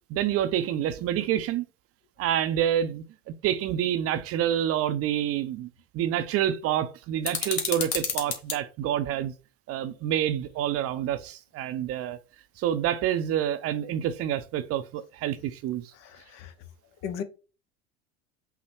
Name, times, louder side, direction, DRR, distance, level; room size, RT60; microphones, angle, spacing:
voice 1, 0.1-1.6 2.2-3.0 3.4-5.7 5.9-9.3 9.7-12.2 12.6-15.9, right 10 dB, 45° right, 0.6 m, -27 dB
sound 1, 7.2-8.6, left 6 dB, 75° left, 1.3 m, -30 dB
voice 2, 15.9-16.5 17.0-17.2, left 8 dB, 55° left, 0.8 m, -37 dB
5.7 x 2.1 x 4.3 m
hypercardioid pair, 85°, 32 cm